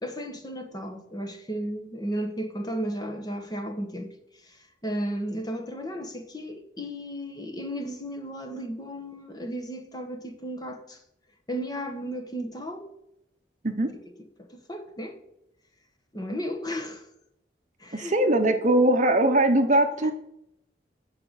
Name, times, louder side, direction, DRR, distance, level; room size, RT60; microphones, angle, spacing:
voice 1, 0.0-4.1 4.4-11.0 11.5-12.9 14.4-15.2 16.1-17.0 17.8-18.2 20.0-20.1, equal, 20° left, 1.2 m, -34 dB
voice 2, 17.9-20.1, right 1 dB, 40° right, 0.8 m, -21 dB
9.6 x 5.1 x 8.1 m
head